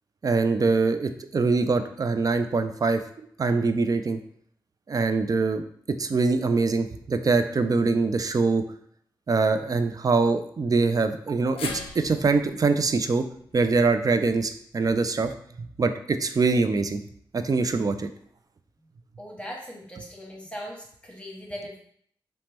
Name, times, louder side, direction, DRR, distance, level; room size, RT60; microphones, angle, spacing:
voice 1, 0.2-3.0 3.4-4.2 4.9-5.6 6.0-8.6 9.3-13.3 13.5-15.3 15.6-17.0 17.3-18.1, right 4 dB, 40° right, 9 dB, 0.3 m, -23 dB
sound 1, 11.6-15.8 16.2-16.3 17.5-17.6, left 4 dB, 80° left, 0.4 m, -42 dB
voice 2, 19.2-21.8, equal, 10° left, -2 dB, 0.9 m, -39 dB
2.9 x 2.1 x 3.2 m, 0.64 s
supercardioid pair, 40°, 9 cm